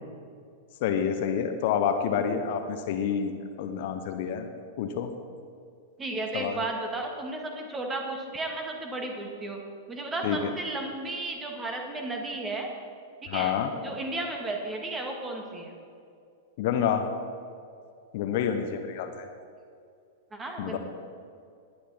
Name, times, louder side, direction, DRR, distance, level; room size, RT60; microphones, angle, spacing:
voice 1, 0.8-3.3 3.6-4.5 4.8-5.1 6.3-6.6 10.2-10.5 13.3-13.7 16.6-17.0 18.1-19.3 20.6-20.8, left 8 dB, 50° left, 7 dB, 1.0 m, -28 dB
voice 2, 6.0-9.6 9.9-12.7 13.2-15.7 20.3-20.8, right 2 dB, 15° right, 2 dB, 2.2 m, -34 dB
19.5 x 9.9 x 4.3 m, 2.4 s
figure-of-eight pair, 95°, 0 cm